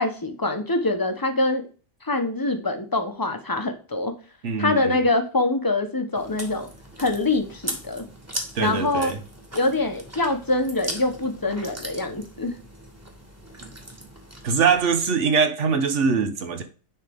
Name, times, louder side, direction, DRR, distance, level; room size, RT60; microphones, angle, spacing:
voice 1, 0.0-1.6 2.0-4.1 4.6-6.7 7.0-8.0 8.6-9.1 9.5-12.5, left 2 dB, 20° left, 0.8 m, -24 dB
voice 2, 4.4-5.0 8.5-9.2 14.4-16.6, right 5 dB, 85° right, 1.3 m, -22 dB
Chewing mastication, 6.1-15.0, right 1 dB, 15° right, 1.2 m, -38 dB
10.0 x 3.6 x 3.5 m
omnidirectional pair, 1.2 m